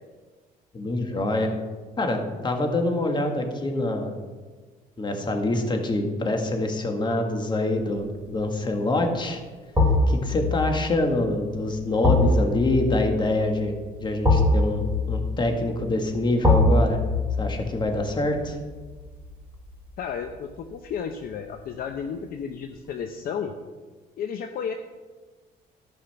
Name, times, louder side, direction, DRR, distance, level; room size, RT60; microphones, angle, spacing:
voice 1, 0.7-1.5 2.0-4.1 5.0-9.4 10.1-13.7 14.0-17.0 17.4-18.6, left 2 dB, 25° left, 4 dB, 1.7 m, -25 dB
sound 1, 8.0-8.3 9.7-20.7 21.1-21.2, left 2 dB, 10° right, 3.2 m, -25 dB
voice 2, 20.0-23.5 24.2-24.7, left 7 dB, 60° left, 6 dB, 0.7 m, -32 dB
13.5 x 5.7 x 5.8 m, 1.4 s
cardioid pair, 110°, 17 cm